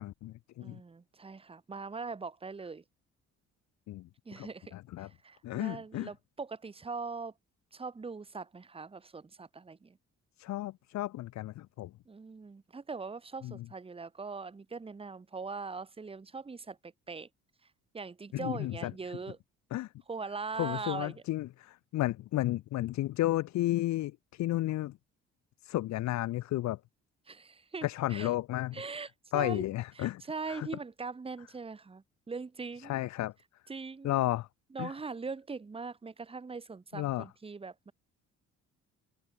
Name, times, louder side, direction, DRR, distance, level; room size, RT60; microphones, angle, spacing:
voice 1, 0.0-0.8 3.9-4.1 4.4-5.1 5.4-6.1 10.4-11.9 13.4-13.7 18.3-19.2 19.7-19.9 20.6-25.0 25.6-26.8 27.8-28.8 29.3-30.2 30.5-30.7 32.8-33.3 34.0-34.5 34.8-34.9 36.9-37.3, left 15 dB, 65° left, 0.5 m, -33 dB
voice 2, 0.6-2.8 4.2-7.3 7.7-10.0 12.1-17.3 17.9-19.4 20.1-21.2 27.3-28.3 28.7-29.1 29.3-29.6 30.0-33.0 33.7-34.2 34.7-37.9, right 4 dB, 20° right, 0.8 m, -41 dB
cardioid pair, 90°, 30 cm